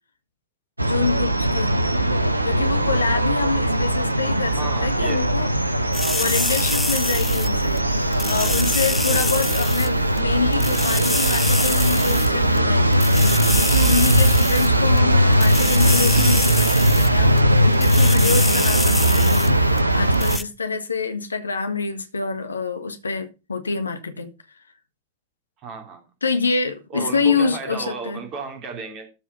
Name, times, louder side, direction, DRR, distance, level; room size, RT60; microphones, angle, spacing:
voice 1, 0.8-2.0 2.4-5.5 6.1-13.0 13.5-19.6 19.9-24.3 26.2-28.2, left 4 dB, 75° left, 1.4 m, -26 dB
sound 1, 0.8-20.4, right 1 dB, 85° right, 0.8 m, -19 dB
voice 2, 4.5-5.3 25.6-26.0 26.9-29.1, right 4 dB, 35° right, 3.1 m, -33 dB
sound 2, 5.9-7.8 8.1-9.9 10.2-10.3 10.5-12.3 12.6-12.7 12.9-15.0 15.3-17.1 17.4-17.5 17.7-19.5 19.8-19.9 20.1-20.4, left 3 dB, 10° left, 0.5 m, -27 dB
13.0 x 4.9 x 5.5 m
figure-of-eight pair, 90°, 0 cm